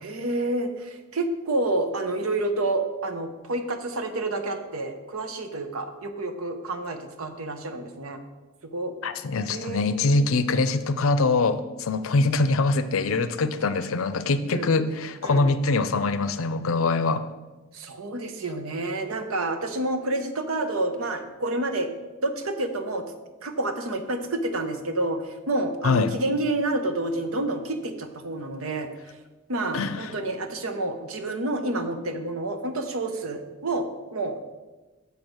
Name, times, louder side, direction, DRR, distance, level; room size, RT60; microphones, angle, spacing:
voice 1, 0.0-8.2 8.6-8.9 9.5-10.3 14.5-14.7 15.2-15.5 17.7-21.9 22.2-23.0 23.4-29.2 29.5-34.4, right 2 dB, 75° right, 7 dB, 0.9 m, -29 dB
voice 2, 9.0-17.3 25.8-26.1 29.7-29.9, left 3 dB, 70° left, 11 dB, 0.6 m, -23 dB
6.9 x 5.1 x 6.2 m, 1.2 s
head